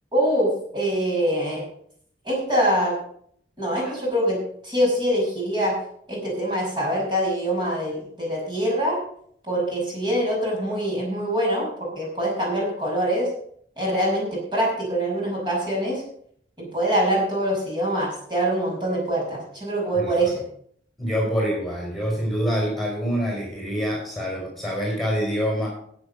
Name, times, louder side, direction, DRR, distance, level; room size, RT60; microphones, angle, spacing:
voice 1, 0.1-1.6 2.2-2.9 3.6-4.4 4.6-5.7 6.1-9.0 9.5-11.7 11.9-13.3 13.8-16.0 16.6-20.4, right 1 dB, 25° right, -3 dB, 6.0 m, -24 dB
voice 2, 21.0-25.7, equal, ahead, -3 dB, 5.3 m, -26 dB
15.0 x 8.7 x 5.2 m, 0.65 s
head